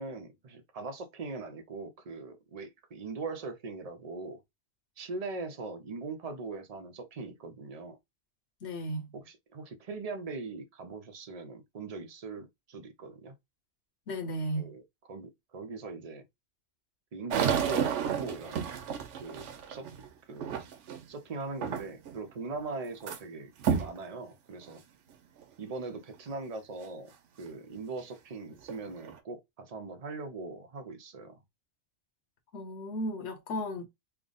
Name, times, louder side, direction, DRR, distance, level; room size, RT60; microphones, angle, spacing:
voice 1, 0.0-4.4 5.0-8.0 9.1-13.4 14.5-16.2 17.1-18.6 19.2-19.9 20.3-20.6 21.1-24.8 25.6-27.1 27.4-31.4, right 3 dB, 40° right, 0.6 m, -40 dB
voice 2, 8.6-9.1 14.1-14.7 32.5-33.9, equal, 65° left, 1.1 m, -35 dB
sound 1, 17.3-21.1 21.6-22.2 22.5-23.2 23.6-24.0 24.6-24.7 25.4-25.5 28.0-28.1 28.6-29.2, right 7 dB, 85° right, 1.0 m, -32 dB
3.4 x 2.0 x 3.8 m
omnidirectional pair, 1.2 m